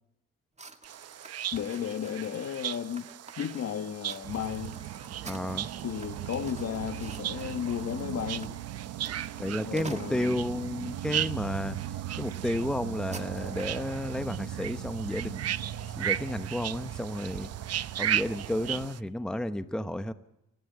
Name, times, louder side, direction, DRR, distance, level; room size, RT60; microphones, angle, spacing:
sound 1, 0.6-10.7 11.3-11.5 11.9-12.1 12.3-13.8, right 3 dB, 20° right, 2.2 m, -50 dB
sound 2, 0.8-19.0, right 11 dB, 55° right, 0.8 m, -37 dB
voice 1, 1.5-3.1 3.4-4.8 5.8-8.5 9.7-10.4, left 8 dB, 55° left, 1.6 m, -34 dB
sound 3, 4.2-18.9, right 11 dB, 80° right, 1.2 m, -39 dB
voice 2, 5.2-5.7 9.4-11.8 12.2-15.5 16.0-17.5 18.0-20.1, left 1 dB, ahead, 1.0 m, -32 dB
29.5 x 12.0 x 9.5 m
cardioid pair, 90°, 30 cm